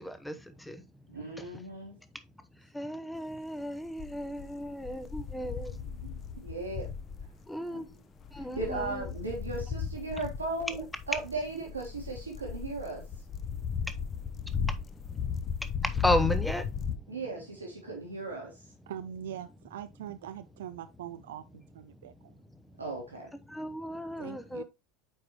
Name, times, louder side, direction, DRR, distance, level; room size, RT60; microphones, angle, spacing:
voice 1, 1.1-2.0 5.5-6.9 7.7-7.8 8.3-13.0 17.1-18.7 22.8-23.3, right 3 dB, 80° right, 1.5 m, -37 dB
voice 2, 2.8-5.7 7.5-7.8 8.4-9.1 16.0-16.6 23.6-24.6, left 1 dB, 5° left, 0.8 m, -33 dB
sound 1, 4.0-7.4 8.2-17.0, left 7 dB, 35° left, 0.7 m, -36 dB
voice 3, 18.9-22.3 24.2-24.6, right 10 dB, 65° right, 0.3 m, -42 dB
8.6 x 4.7 x 3.0 m
figure-of-eight pair, 75°, 0 cm